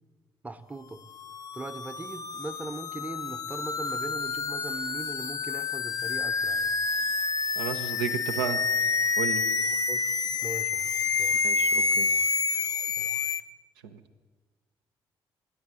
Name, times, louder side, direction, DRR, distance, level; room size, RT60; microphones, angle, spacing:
voice 1, 0.4-1.0 1.5-6.7 9.9-10.1 10.4-10.9 11.2-11.4 13.0-13.1, right 2 dB, 10° right, 8 dB, 0.6 m, -40 dB
sound 1, 1.1-13.4, left 4 dB, 30° left, 0.4 m, -28 dB
voice 2, 7.6-8.6 9.2-9.4 11.4-12.1 13.8-13.9, right 8 dB, 75° right, 5 dB, 0.5 m, -32 dB
9.4 x 6.8 x 7.6 m, 1.4 s
figure-of-eight pair, 40°, 12 cm